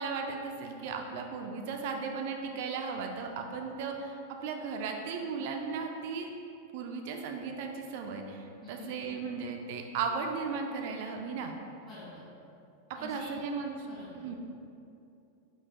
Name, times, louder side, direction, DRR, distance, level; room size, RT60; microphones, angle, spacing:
voice 1, 0.0-6.3 6.7-11.5 13.0-13.9 14.1-14.4, right 5 dB, 50° right, 3 dB, 0.4 m, -36 dB
voice 2, 8.6-8.9 11.8-12.2 12.9-13.3 13.8-14.4, left 3 dB, 30° left, -12 dB, 1.3 m, -48 dB
4.4 x 4.0 x 2.8 m, 2.7 s
figure-of-eight pair, 90°, 0 cm